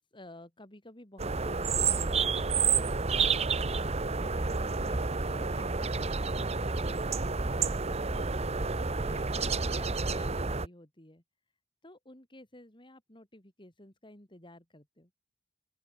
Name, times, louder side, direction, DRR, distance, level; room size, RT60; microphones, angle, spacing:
voice 1, 0.0-3.4 3.7-8.6 8.9-11.2 11.8-15.1, left 1 dB, 25° left, 4.5 m, -52 dB
sound 1, 1.2-10.7, right 4 dB, 35° right, 1.1 m, -30 dB
open air
head